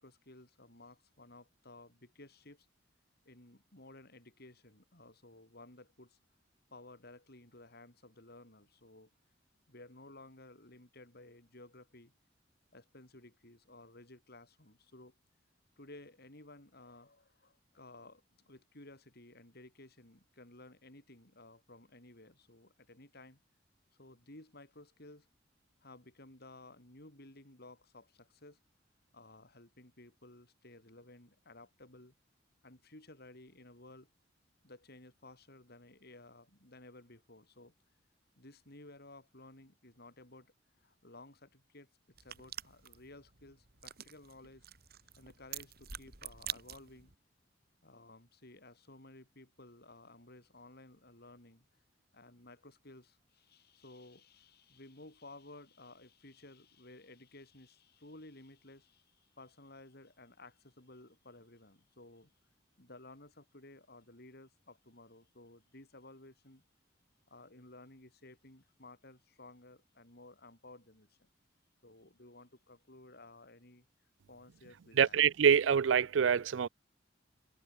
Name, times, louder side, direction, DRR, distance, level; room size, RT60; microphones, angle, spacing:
voice 1, 0.0-2.7 3.2-6.2 6.7-9.1 9.7-12.1 12.7-15.1 15.8-23.4 24.0-25.3 25.8-28.6 29.1-32.1 32.6-34.1 34.6-37.7 38.4-41.9 42.2-44.7 45.2-47.1 47.8-51.6 52.1-62.3 62.8-66.6 67.3-71.3 71.8-73.9 74.3-75.3, left 2 dB, 55° left, 6.5 m, -56 dB
sound 1, 42.2-47.1, right 10 dB, 55° right, 4.3 m, -47 dB
voice 2, 75.0-76.7, right 7 dB, 75° right, 0.4 m, -26 dB
head